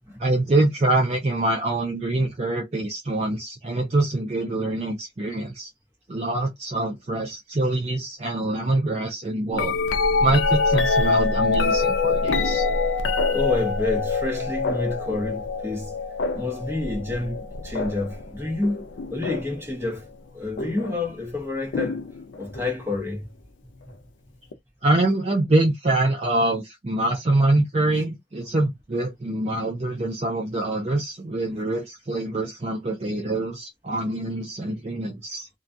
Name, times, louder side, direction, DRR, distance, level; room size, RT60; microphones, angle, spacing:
voice 1, 0.2-5.7 6.1-9.7 10.2-12.6 24.8-35.5, right 2 dB, 35° right, 0.5 m, -24 dB
sound 1, 9.5-19.6 20.6-21.0 21.7-22.7 24.5-24.6, left 4 dB, 85° left, 0.4 m, -25 dB
voice 2, 13.3-15.9 16.3-18.8 19.1-22.0 22.4-23.3, left 2 dB, 15° right, 0.9 m, -29 dB
2.3 x 2.2 x 2.6 m
head